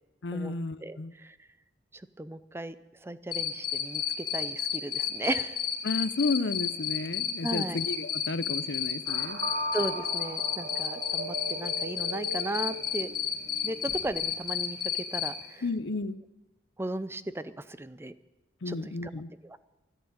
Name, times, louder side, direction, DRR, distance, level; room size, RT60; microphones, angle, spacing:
voice 1, 0.2-1.1 5.8-9.4 15.6-16.2 18.6-19.3, left 3 dB, 75° left, 16 dB, 0.7 m, -32 dB
voice 2, 0.8-1.3 2.2-2.7 3.0-5.6 7.4-7.8 9.7-13.1 13.6-14.8 15.1-15.6 16.8-18.1 18.7-19.1 19.4-19.7, right 2 dB, 15° right, 14 dB, 0.5 m, -36 dB
Cricket, 3.3-15.3, left 9 dB, 55° left, 1.8 m, -30 dB
sound 1, 9.1-14.3, equal, 65° right, 1.7 m, -38 dB
13.0 x 11.0 x 8.7 m, 1.1 s
head